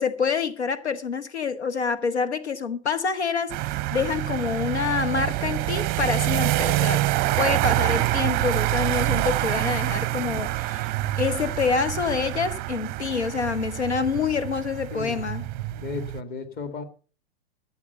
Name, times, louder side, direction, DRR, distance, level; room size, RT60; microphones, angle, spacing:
voice 1, 0.0-7.0 7.4-15.5, left 5 dB, 85° left, 1.2 m, -27 dB
sound 1, 3.5-16.2, right 18 dB, 30° right, 0.6 m, -26 dB
voice 2, 14.9-15.3 15.7-16.8, left 4 dB, 25° left, 1.9 m, -34 dB
13.0 x 8.4 x 6.7 m
hypercardioid pair, 110°, 33 cm